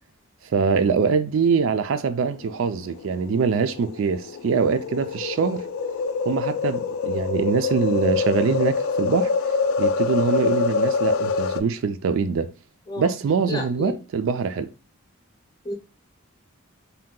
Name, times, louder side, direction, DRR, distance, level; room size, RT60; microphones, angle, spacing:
voice 1, 0.4-5.6 6.2-9.3 9.8-12.5 13.0-14.7, right 5 dB, 65° right, 0.3 m, -23 dB
sound 1, 2.5-11.6, left 4 dB, 70° left, 0.3 m, -25 dB
voice 2, 13.5-14.0 15.6-15.7, left 2 dB, 20° left, 0.6 m, -30 dB
2.7 x 2.2 x 3.6 m
head